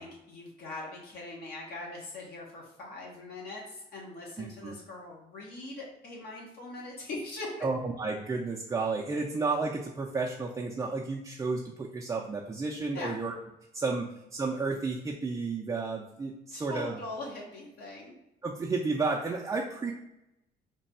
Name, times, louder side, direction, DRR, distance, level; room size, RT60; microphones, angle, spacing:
voice 1, 0.0-7.7 12.9-13.1 16.5-18.1, left 2 dB, 65° left, -3 dB, 1.0 m, -41 dB
voice 2, 4.4-4.7 7.6-13.4 13.7-17.0 18.4-19.9, right 3 dB, 20° right, -2 dB, 0.4 m, -32 dB
3.2 x 2.2 x 4.1 m, 0.90 s
cardioid pair, 110°, 17 cm